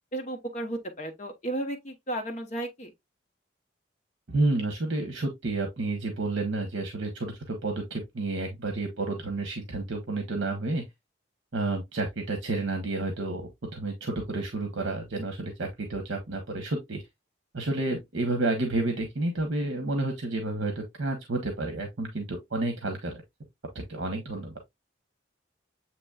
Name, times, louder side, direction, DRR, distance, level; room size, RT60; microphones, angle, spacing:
voice 1, 0.1-2.9, right 1 dB, 35° left, 0.9 m, -34 dB
voice 2, 4.3-10.8 11.5-17.0 17.5-23.2 23.7-24.5, right 2 dB, 65° right, 0.9 m, -30 dB
7.7 x 2.9 x 2.3 m
head